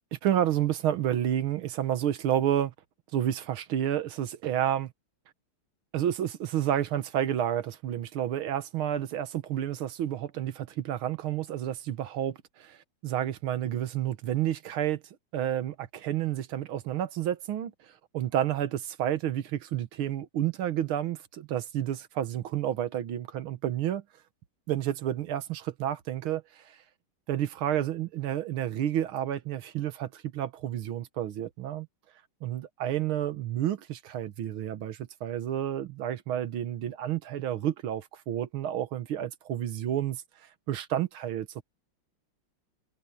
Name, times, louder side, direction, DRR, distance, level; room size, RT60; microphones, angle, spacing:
voice 1, 0.1-2.7 3.1-4.9 5.9-12.8 13.0-15.0 15.3-24.0 24.7-26.8 27.3-31.9 32.4-40.2 40.7-41.6, right 11 dB, 75° right, 1.9 m, -30 dB
omnidirectional pair, 2.4 m